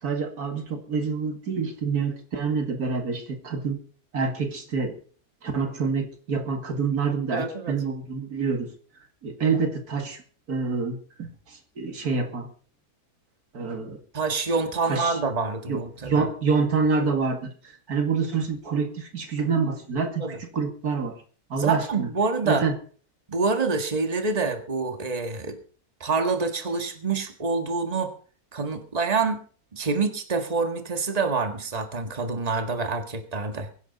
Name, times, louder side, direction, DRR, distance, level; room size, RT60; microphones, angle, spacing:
voice 1, 0.0-3.8 4.1-4.9 5.4-8.7 9.2-10.2 10.5-12.5 13.5-14.0 14.9-15.2 15.7-21.2 21.5-22.1 22.4-22.8, right 5 dB, 80° right, 5 dB, 2.6 m, -27 dB
voice 2, 7.3-7.7 14.1-16.3 20.2-20.4 21.6-22.6 23.3-25.6 26.0-28.1 28.5-29.4 29.7-33.7, right 4 dB, 25° right, 6 dB, 1.8 m, -26 dB
23.0 x 10.5 x 4.1 m, 0.42 s
omnidirectional pair, 1.6 m